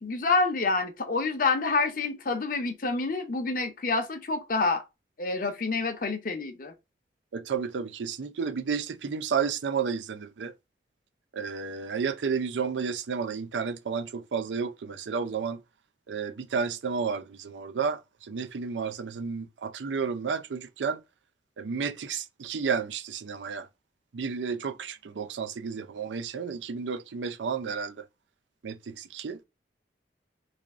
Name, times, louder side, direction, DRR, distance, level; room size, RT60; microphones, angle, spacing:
voice 1, 0.0-4.8 5.2-6.7, left 3 dB, 50° left, 0.6 m, -27 dB
voice 2, 7.3-10.5 11.3-15.6 16.1-18.0 18.3-21.0 21.6-23.7 24.1-27.9 28.6-29.4, right 6 dB, 90° right, 0.5 m, -31 dB
3.3 x 2.5 x 3.5 m
head